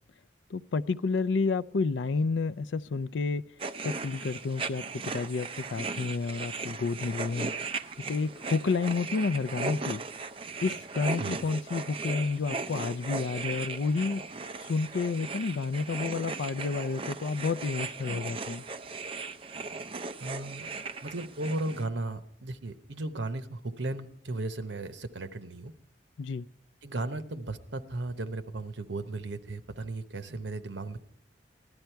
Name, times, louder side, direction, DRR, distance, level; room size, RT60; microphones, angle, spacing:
voice 1, 0.5-3.4 3.8-4.8 5.1-7.5 8.1-10.0 10.6-14.2 14.6-18.6 26.2-26.5, left 4 dB, 80° left, 0.5 m, -30 dB
sound 1, 3.6-21.8, right 4 dB, 30° right, 0.5 m, -37 dB
voice 2, 20.2-20.7 21.0-25.7 26.8-31.0, right 2 dB, 80° right, 1.0 m, -35 dB
15.5 x 11.5 x 4.5 m
head